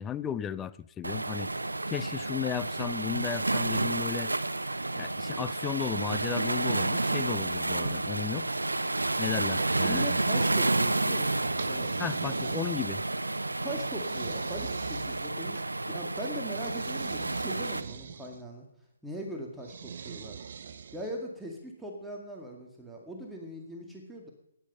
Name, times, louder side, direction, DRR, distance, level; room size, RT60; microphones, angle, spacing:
voice 1, 0.0-1.5 1.9-4.3 5.0-8.5 9.2-10.0 12.0-13.0, left 9 dB, 15° left, 15 dB, 0.5 m, -35 dB
Waves surf, 1.0-17.8, right 2 dB, 90° right, 0.7 m, -30 dB
voice 2, 9.4-12.0 13.6-15.6 15.9-18.7 19.0-20.4 20.9-24.3, right 1 dB, 5° right, 0 dB, 2.1 m, -40 dB
sound 1, 11.4-13.1 13.7-15.7 16.5-18.4 19.6-21.2, right 7 dB, 55° right, 0.8 m, -43 dB
14.5 x 10.5 x 5.5 m, 0.81 s
figure-of-eight pair, 140°, 0 cm